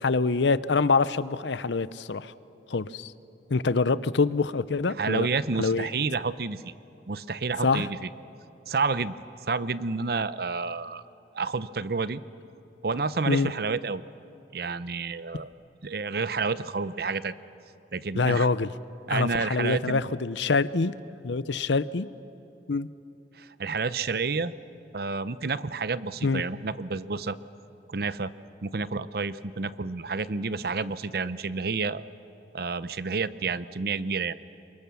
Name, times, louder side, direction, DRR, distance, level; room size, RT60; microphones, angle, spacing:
voice 1, 0.0-2.3 2.7-3.1 3.5-5.3 5.6-5.9 7.6-7.9 13.3-13.5 18.2-18.7 19.1-20.9 21.2-22.1 22.7-22.9 26.2-26.4, left 4 dB, 80° left, 16 dB, 0.7 m, -25 dB
voice 2, 5.0-6.6 7.1-8.1 8.7-9.1 9.5-11.0 11.3-12.2 12.8-14.0 14.5-15.5 15.8-17.3 17.9-18.5 19.1-20.0 23.3-24.5 24.9-27.4 27.9-28.3 28.6-32.0 32.5-34.3, right 4 dB, 55° right, 15 dB, 0.7 m, -29 dB
27.5 x 23.5 x 7.0 m, 2.7 s
head